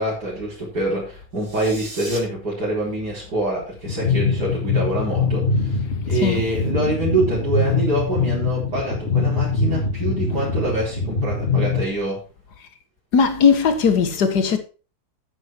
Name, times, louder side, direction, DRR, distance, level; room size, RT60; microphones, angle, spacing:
voice 1, 0.0-12.2, right 1 dB, 80° right, 4.7 m, -25 dB
sound 1, 1.3-2.2, right 2 dB, 35° right, 2.1 m, -37 dB
sound 2, 3.9-11.8, left 4 dB, 40° left, 1.8 m, -23 dB
voice 2, 13.1-14.6, left 6 dB, 80° left, 1.8 m, -18 dB
9.7 x 8.1 x 4.3 m
omnidirectional pair, 1.7 m